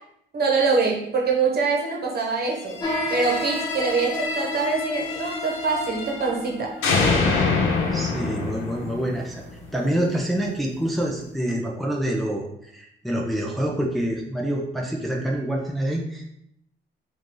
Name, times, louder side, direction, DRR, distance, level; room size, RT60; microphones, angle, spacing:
voice 1, 0.3-2.8 3.1-6.8, right 4 dB, 50° right, 0 dB, 1.2 m, -24 dB
sound 1, 2.7-6.5 6.8-9.8, left 4 dB, 90° left, 0.8 m, -26 dB
sound 2, 2.8-10.6, equal, 20° left, 1.2 m, -35 dB
voice 2, 7.9-9.4 9.7-16.3, right 1 dB, ahead, -1 dB, 0.7 m, -26 dB
4.7 x 2.7 x 3.7 m, 0.75 s
cardioid pair, 90°, 20 cm